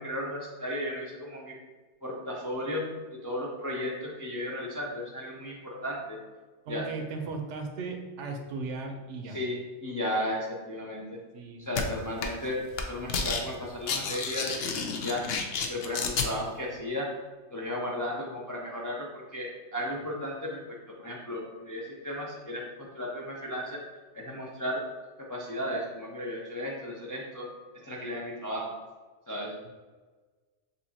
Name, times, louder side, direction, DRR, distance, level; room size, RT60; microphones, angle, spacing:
voice 1, 0.0-1.5 2.0-2.9 3.2-6.2 6.7-6.9 9.3-11.2 11.6-14.6 14.8-15.3 15.7-17.1 17.5-20.6 20.9-23.8 24.1-24.9 25.2-28.8 29.3-29.5, left 1 dB, 30° left, -3 dB, 0.3 m, -34 dB
voice 2, 6.7-9.4 11.3-12.0, right 3 dB, 85° right, 3 dB, 1.0 m, -37 dB
sound 1, 11.8-11.9 12.2-12.5 12.7-13.4 13.7-16.3, left 5 dB, 65° left, 0.7 m, -30 dB
6.7 x 2.7 x 2.8 m, 1.3 s
omnidirectional pair, 1.2 m